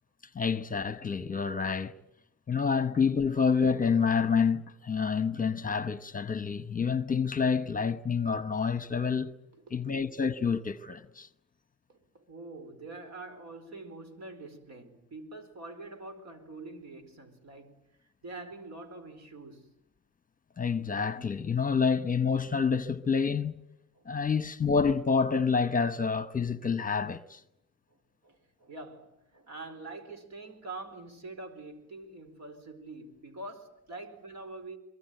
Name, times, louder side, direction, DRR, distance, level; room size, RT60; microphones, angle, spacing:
voice 1, 0.3-1.9 2.5-9.4 9.7-11.3 20.6-23.5 24.1-27.4, left 5 dB, 25° left, 1.0 m, -28 dB
voice 2, 9.5-10.0 11.9-19.7 23.9-24.0 27.9-34.8, right 2 dB, 60° right, 4.5 m, -45 dB
23.5 x 23.0 x 9.2 m
cardioid pair, 90°, 30 cm